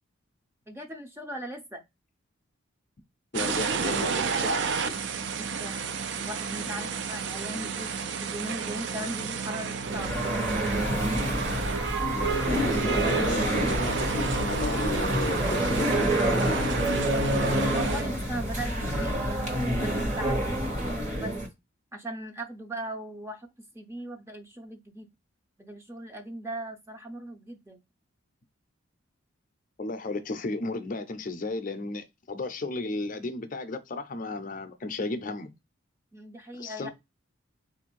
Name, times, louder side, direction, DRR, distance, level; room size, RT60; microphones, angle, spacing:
voice 1, 0.7-1.8 5.3-8.0 8.2-10.4 17.7-21.3 21.9-25.1 25.6-27.8 36.1-36.9, right 1 dB, 10° right, 0.5 m, -38 dB
voice 2, 3.3-4.9 12.1-16.7 29.8-35.5 36.5-36.9, left 2 dB, 40° left, 0.5 m, -34 dB
sound 1, 3.3-18.0, right 5 dB, 55° right, 0.4 m, -31 dB
sound 2, 9.8-21.5, right 1 dB, 35° right, 1.2 m, -27 dB
3.9 x 2.5 x 4.5 m
head